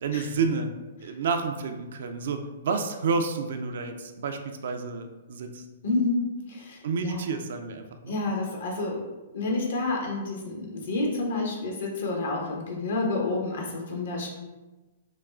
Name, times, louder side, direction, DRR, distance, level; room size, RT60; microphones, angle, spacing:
voice 1, 0.0-0.7 1.0-5.6 6.8-8.2, right 4 dB, 60° right, 6 dB, 0.4 m, -30 dB
voice 2, 5.8-6.8 7.0-7.2 8.1-9.0 9.3-14.3, left 2 dB, 65° left, 0 dB, 1.0 m, -29 dB
5.9 x 2.3 x 2.4 m, 1.2 s
figure-of-eight pair, 115°, 0 cm